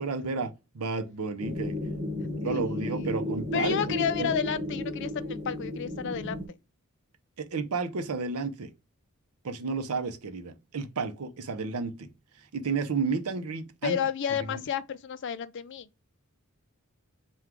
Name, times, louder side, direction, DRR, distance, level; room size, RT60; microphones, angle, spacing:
voice 1, 0.0-1.7 2.2-3.8 4.2-4.4 7.4-8.7 9.4-12.1 12.5-14.0 14.5-14.6, right 4 dB, 80° right, 0.6 m, -32 dB
sound 1, 1.4-6.5, left 1 dB, 5° right, 1.2 m, -33 dB
voice 2, 2.2-3.2 3.5-6.5 13.8-15.9, left 8 dB, 55° left, 0.4 m, -32 dB
4.5 x 2.3 x 3.6 m
head